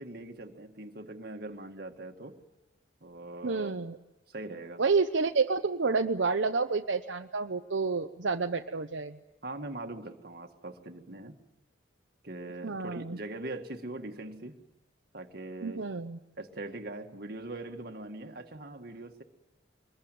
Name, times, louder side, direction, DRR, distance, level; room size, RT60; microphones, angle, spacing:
voice 1, 0.0-2.4 3.0-3.7 4.3-4.8 9.4-11.4 12.2-14.6 15.1-15.8 16.4-19.2, right 2 dB, 50° right, 4 dB, 1.9 m, -41 dB
voice 2, 3.4-4.0 4.8-9.2 12.6-13.2 15.6-16.2, right 4 dB, 75° right, 5 dB, 0.8 m, -29 dB
23.5 x 21.5 x 9.2 m, 1.0 s
head